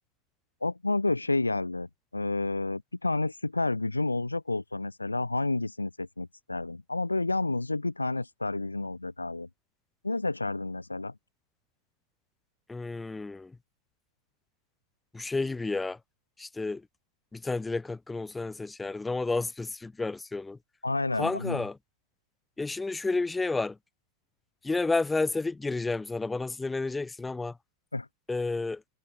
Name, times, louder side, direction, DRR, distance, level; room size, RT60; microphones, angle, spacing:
voice 1, 0.6-9.5 10.0-11.1 20.8-21.6 27.9-28.1, left 2 dB, 80° left, 1.2 m, -30 dB
voice 2, 12.7-13.5 15.1-16.0 16.4-16.8 17.3-20.6 21.2-21.7 22.6-23.8 24.6-27.5 28.3-28.8, left 3 dB, 10° left, 3.2 m, -31 dB
figure-of-eight pair, 90°, 0 cm